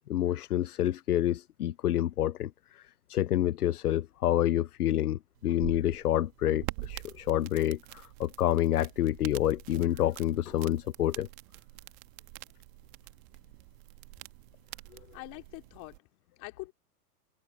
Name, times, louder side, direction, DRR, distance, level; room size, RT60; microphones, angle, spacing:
voice 1, 0.1-2.8 3.1-11.3, left 12 dB, 70° left, 0.7 m, -28 dB
sound 1, 5.4-16.0, right 26 dB, 45° right, 1.8 m, -46 dB
voice 2, 15.1-16.7, left 25 dB, 40° left, 3.3 m, -45 dB
figure-of-eight pair, 100°, 46 cm